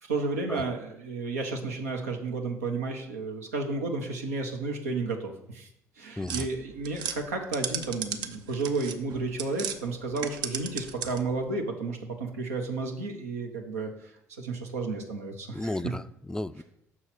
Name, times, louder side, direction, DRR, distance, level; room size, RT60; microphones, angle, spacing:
voice 1, 0.0-5.7 6.0-15.7, right 3 dB, 85° right, 3 dB, 0.9 m, -32 dB
voice 2, 6.2-6.5 15.5-16.6, left 1 dB, 10° left, 14 dB, 0.3 m, -34 dB
sound 1, 6.3-9.8 10.1-11.4, right 8 dB, 60° right, 0.6 m, -35 dB
6.2 x 4.1 x 5.9 m, 0.76 s
hypercardioid pair, 55°, 8 cm